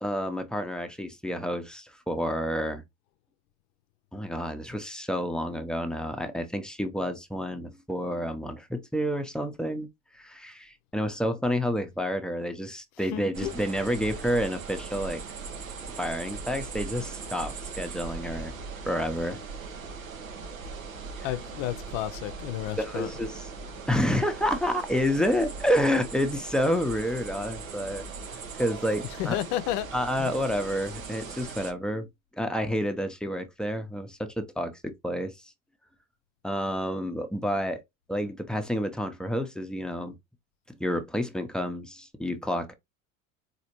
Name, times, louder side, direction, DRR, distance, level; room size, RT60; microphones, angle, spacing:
voice 1, 0.0-2.8 4.1-9.9 10.1-15.2 16.0-18.5 18.8-19.4 22.8-23.5 23.9-28.0 28.6-29.4 29.9-32.1 32.3-35.3 36.4-37.8 38.1-40.2 40.7-42.7, equal, ahead, 0.6 m, -29 dB
voice 2, 13.1-13.5 21.2-23.1 29.2-29.9 30.2-30.3, left 13 dB, 55° left, 0.6 m, -31 dB
sound 1, 13.3-31.7, right 5 dB, 90° right, 0.8 m, -39 dB
4.1 x 2.9 x 2.9 m
hypercardioid pair, 75°, 40 cm